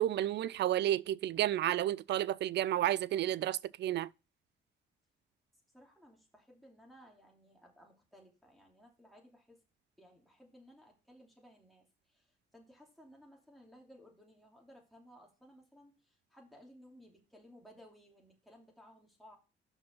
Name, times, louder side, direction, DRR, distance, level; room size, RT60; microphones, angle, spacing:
voice 1, 0.0-4.1, right 12 dB, 60° right, 0.4 m, -31 dB
voice 2, 5.7-9.6 10.0-19.4, equal, ahead, 2.8 m, -59 dB
5.9 x 5.2 x 5.6 m
cardioid pair, 90°, 20 cm